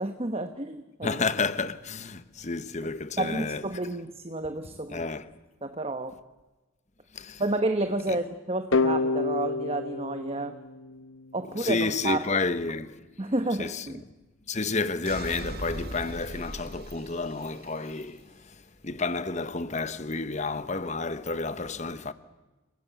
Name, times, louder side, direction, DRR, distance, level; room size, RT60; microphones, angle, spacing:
voice 1, 0.0-1.2 3.2-5.0 5.6-6.2 7.4-10.6 11.3-12.3 13.2-14.0, right 2 dB, 25° right, 1.0 m, -30 dB
voice 2, 1.0-3.6 4.9-5.3 7.1-7.4 8.1-8.2 11.6-13.0 13.6-14.0 14.5-22.1, left 3 dB, 30° left, 1.1 m, -31 dB
sound 1, 8.7-11.5, left 3 dB, 65° left, 1.0 m, -28 dB
sound 2, 15.1-17.9, right 1 dB, 45° right, 1.8 m, -39 dB
29.5 x 20.5 x 8.3 m
head